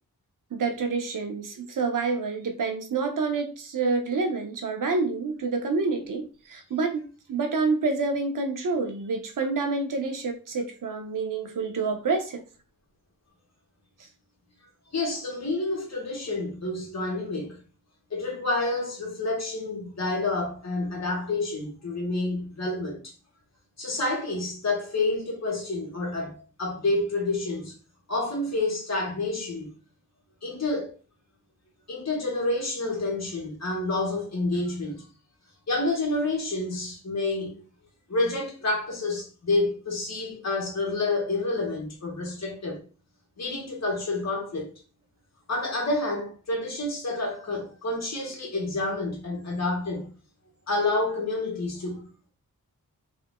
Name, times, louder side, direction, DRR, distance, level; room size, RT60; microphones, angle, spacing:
voice 1, 0.5-12.4, right 4 dB, 75° right, 0.9 m, -28 dB
voice 2, 14.9-17.6 18.1-23.1 23.8-27.8 28.1-29.7 30.4-30.9 31.9-35.1 35.7-37.6 38.1-42.8 43.4-44.7 45.5-50.1 50.7-52.3, left 2 dB, 55° left, 1.7 m, -29 dB
3.5 x 2.8 x 3.7 m
wide cardioid pair, 100°, 33 cm